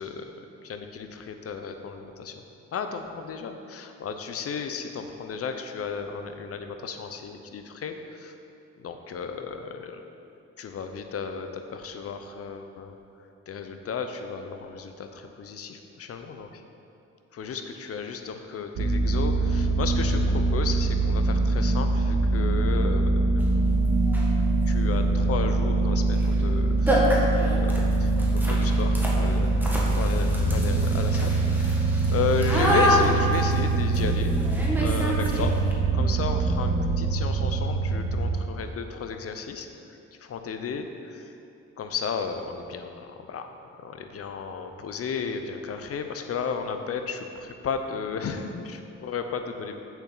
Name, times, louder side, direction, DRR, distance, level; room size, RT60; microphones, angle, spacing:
voice 1, 0.7-2.3 2.7-8.3 8.8-10.0 10.6-13.0 13.5-16.6 17.3-23.1 24.7-27.7 28.0-29.5 29.9-34.3 34.8-35.5 35.9-39.7 40.2-41.3 41.8-43.5 43.8-49.8, left 6 dB, 50° left, 6 dB, 0.8 m, -33 dB
sound 1, 18.8-38.4, right 3 dB, 80° right, 1.1 m, -23 dB
sound 2, 23.4-23.5 24.0-24.4 26.1-26.3 26.5-26.6 26.9-35.7, equal, 5° right, 1.6 m, -28 dB
8.1 x 7.0 x 4.0 m, 2.8 s
cardioid pair, 90°, 30 cm